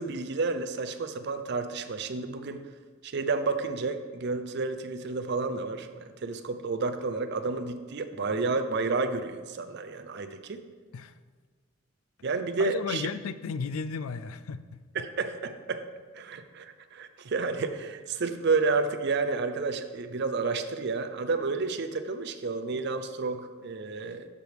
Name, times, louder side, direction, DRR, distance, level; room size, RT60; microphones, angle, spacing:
voice 1, 0.0-2.7 3.0-10.6 12.2-13.1 14.9-15.8 16.1-24.3, right 4 dB, 55° right, 9 dB, 0.5 m, -30 dB
voice 2, 12.6-14.8, left 5 dB, 90° left, 14 dB, 0.4 m, -34 dB
12.5 x 4.9 x 3.4 m, 1.5 s
head